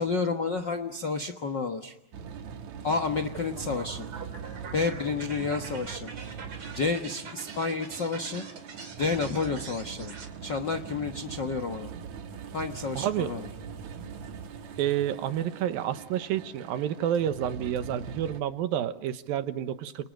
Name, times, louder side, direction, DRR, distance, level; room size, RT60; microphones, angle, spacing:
voice 1, 0.0-1.9 2.8-4.1 4.7-6.1 6.7-8.4 9.0-10.1 10.4-11.9 12.5-13.5, left 4 dB, 60° left, 5 dB, 1.1 m, -30 dB
sound 1, 2.1-18.4, right 6 dB, 60° right, 2.7 m, -42 dB
sound 2, 3.3-10.3, right 5 dB, 40° right, 3.5 m, -44 dB
voice 2, 13.0-13.3 14.8-20.1, right 10 dB, 85° right, 11 dB, 3.0 m, -29 dB
30.0 x 29.5 x 6.4 m, 0.93 s
omnidirectional pair, 4.1 m